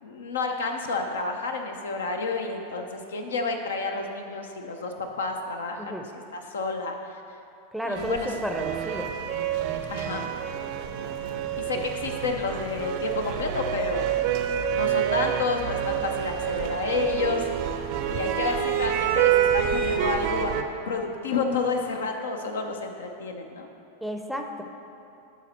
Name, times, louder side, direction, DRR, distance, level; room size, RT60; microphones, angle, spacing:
voice 1, 0.0-7.0 7.8-8.3 9.9-10.3 11.6-14.2 14.5-17.4 18.0-20.5 20.9-23.7, left 4 dB, 70° left, 4 dB, 0.6 m, -30 dB
voice 2, 7.7-9.1 24.0-24.6, equal, ahead, 3 dB, 0.6 m, -32 dB
sound 1, 7.9-20.6, right 9 dB, 50° right, 0.5 m, -27 dB
11.0 x 4.1 x 4.2 m, 2.7 s
figure-of-eight pair, 90°, 0 cm